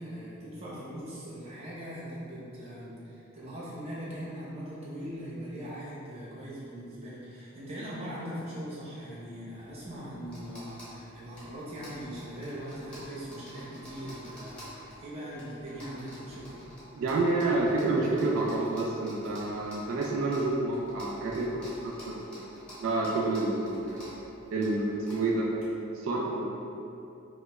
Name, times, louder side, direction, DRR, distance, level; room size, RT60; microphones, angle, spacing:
voice 1, 0.0-16.6, equal, 30° right, -9 dB, 0.8 m, -40 dB
sound 1, 9.6-25.6, equal, 5° left, 0.8 m, -50 dB
voice 2, 16.9-22.4 22.8-24.1 24.5-25.5 25.9-26.5, right 2 dB, 85° right, -2 dB, 0.3 m, -29 dB
4.7 x 2.0 x 2.3 m, 2.8 s
head